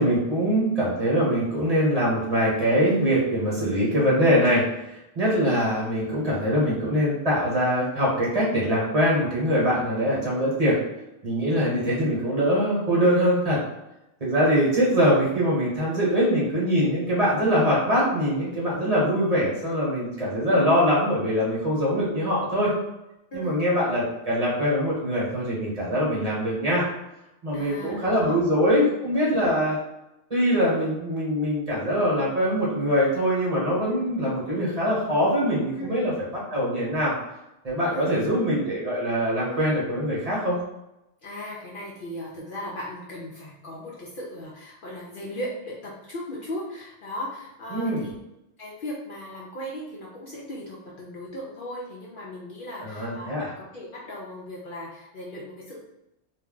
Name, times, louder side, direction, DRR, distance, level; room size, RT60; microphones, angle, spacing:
voice 1, 0.0-4.6 4.9-10.8 11.2-13.6 14.2-22.7 23.3-26.8 27.4-29.8 30.3-37.1 37.6-40.6 47.7-48.0 52.8-53.5, equal, 35° right, -6 dB, 1.0 m, -23 dB
voice 2, 27.5-28.4 29.2-29.4 33.9-34.0 35.8-36.0 37.9-38.4 39.4-40.0 41.2-48.1 48.6-55.8, left 1 dB, 60° left, -4 dB, 0.6 m, -37 dB
2.3 x 2.2 x 3.6 m, 0.90 s
omnidirectional pair, 1.2 m